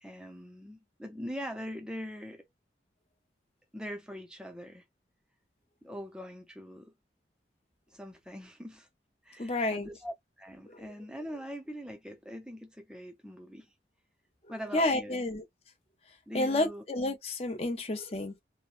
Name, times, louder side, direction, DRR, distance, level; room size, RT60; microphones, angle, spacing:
voice 1, 0.0-2.5 3.7-4.8 5.8-6.9 7.9-8.9 9.2-13.7 14.5-15.2 16.3-16.8 17.7-17.9, equal, 5° right, 0.5 m, -42 dB
voice 2, 9.4-9.9 10.7-10.9 14.7-15.4 16.3-18.4, left 2 dB, 35° left, 0.7 m, -30 dB
3.0 x 2.1 x 2.4 m
head